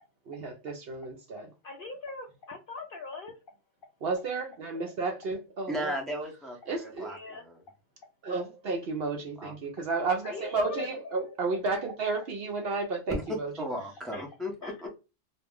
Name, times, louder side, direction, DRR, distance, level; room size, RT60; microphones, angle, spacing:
voice 1, 0.3-1.5 4.0-5.9 6.7-7.1 8.2-13.5, right 3 dB, 60° right, 0.7 m, -32 dB
voice 2, 1.6-3.3 4.7-4.8 7.0-7.4 10.2-11.0 14.1-14.2 14.6-14.8, left 3 dB, 65° left, 0.5 m, -41 dB
voice 3, 5.7-7.6 9.4-9.5 13.1-13.2 13.6-14.9, equal, ahead, 0.4 m, -36 dB
2.4 x 2.0 x 3.4 m
omnidirectional pair, 1.3 m